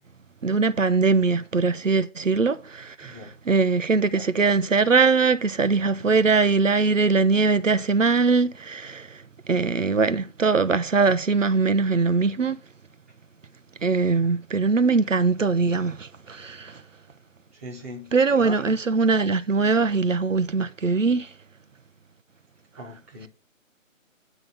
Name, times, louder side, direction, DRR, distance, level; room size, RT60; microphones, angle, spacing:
voice 1, 0.4-3.1 3.5-9.1 9.5-12.6 13.8-16.7 18.1-21.3, right 4 dB, 70° right, 1.0 m, -21 dB
voice 2, 3.0-3.3 17.5-18.8 22.8-23.3, equal, 10° right, 1.0 m, -39 dB
9.4 x 6.2 x 7.1 m
figure-of-eight pair, 160°, 40 cm